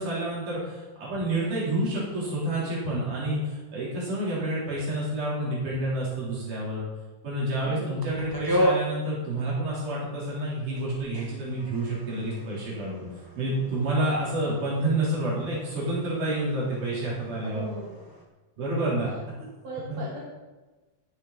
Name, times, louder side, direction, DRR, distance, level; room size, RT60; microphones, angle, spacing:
voice 1, 0.0-6.9 7.2-13.0 13.4-17.7 18.6-19.1 19.4-19.5 19.9-20.0, right 1 dB, 85° right, -7 dB, 5.5 m, -29 dB
voice 2, 7.6-8.0 17.4-17.9 18.8-19.0 19.6-20.2, right 3 dB, 55° right, -8 dB, 3.7 m, -38 dB
sound 1, 8.0-10.2 10.5-18.2, equal, 35° right, 0.3 m, -34 dB
18.0 x 7.0 x 4.3 m, 1.2 s
omnidirectional pair, 3.4 m